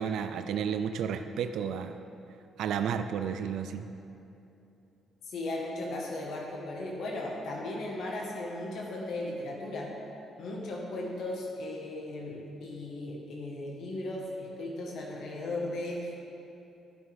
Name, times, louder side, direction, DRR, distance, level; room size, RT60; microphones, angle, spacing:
voice 1, 0.0-1.9 2.6-3.9, right 7 dB, 80° right, 9 dB, 0.4 m, -32 dB
voice 2, 5.2-9.9 10.4-16.1, left 2 dB, 70° left, -2 dB, 1.4 m, -36 dB
13.0 x 7.1 x 3.5 m, 2.8 s
cardioid pair, 90°, 0 cm